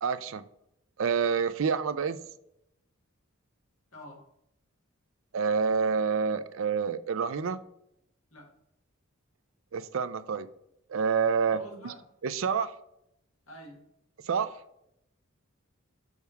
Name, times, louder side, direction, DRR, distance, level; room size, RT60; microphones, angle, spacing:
voice 1, 0.0-0.4 1.0-2.2 5.3-7.6 9.7-10.5 10.9-11.6 11.8-11.9 12.2-12.7 14.2-14.6, right 6 dB, 65° right, 13 dB, 0.4 m, -28 dB
voice 2, 3.9-4.2 8.3-8.5 11.5-12.0 13.5-13.8, equal, 65° left, -2 dB, 2.0 m, -47 dB
6.4 x 3.5 x 5.6 m, 0.78 s
head